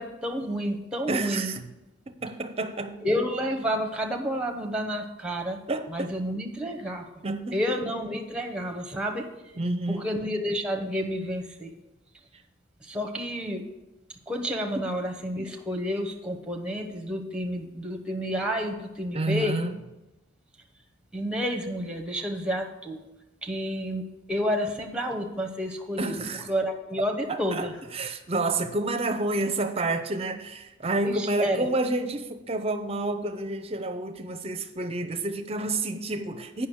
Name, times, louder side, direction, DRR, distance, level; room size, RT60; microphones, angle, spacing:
voice 1, 0.0-1.5 3.0-5.6 5.9-7.0 7.5-9.3 9.9-11.7 12.8-13.6 14.3-19.6 21.1-23.1 23.4-26.2 26.5-27.7 31.0-31.7, equal, 5° right, 0.9 m, -30 dB
voice 2, 1.1-1.6 2.1-3.0 5.7-6.1 7.2-7.6 9.6-10.1 19.1-19.8 26.0-26.5 27.3-36.7, right 2 dB, 30° right, 0.6 m, -29 dB
8.4 x 5.8 x 6.4 m
head